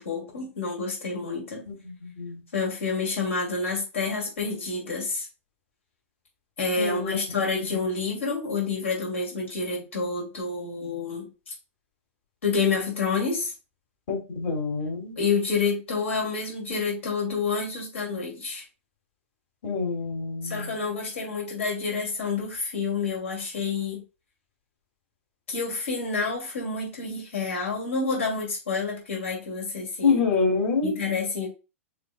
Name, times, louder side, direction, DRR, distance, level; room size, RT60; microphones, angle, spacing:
voice 1, 0.0-1.6 2.5-5.3 6.6-11.5 12.4-13.5 15.2-18.6 20.4-24.0 25.5-30.2 30.8-31.5, left 4 dB, 70° left, -2 dB, 2.3 m, -28 dB
voice 2, 1.7-2.4 6.8-7.2 14.1-15.1 19.6-20.7 30.0-31.0, left 4 dB, 55° left, -1 dB, 2.2 m, -26 dB
6.7 x 3.0 x 2.2 m, 0.30 s
figure-of-eight pair, 105°, 7 cm